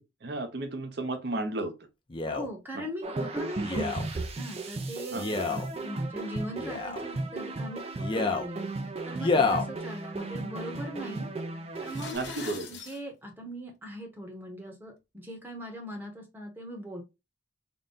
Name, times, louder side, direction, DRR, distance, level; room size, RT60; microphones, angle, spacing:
voice 1, 0.0-1.7 2.7-2.9 5.1-5.4 12.1-12.7, right 2 dB, 55° right, 0.7 m, -33 dB
Male speech man speaking, 2.1-2.5 3.6-4.0 5.1-5.7 6.6-7.0 8.0-8.5 9.2-9.7 10.4-10.5, left 4 dB, 25° left, 0.5 m, -28 dB
voice 2, 2.3-8.7 9.0-11.3 11.8-17.0, equal, 10° right, 0.9 m, -40 dB
sound 1, 3.0-12.1, right 2 dB, 30° right, 0.4 m, -35 dB
sound 2, 11.7-13.0, left 5 dB, 65° left, 1.0 m, -42 dB
3.9 x 2.2 x 3.7 m
head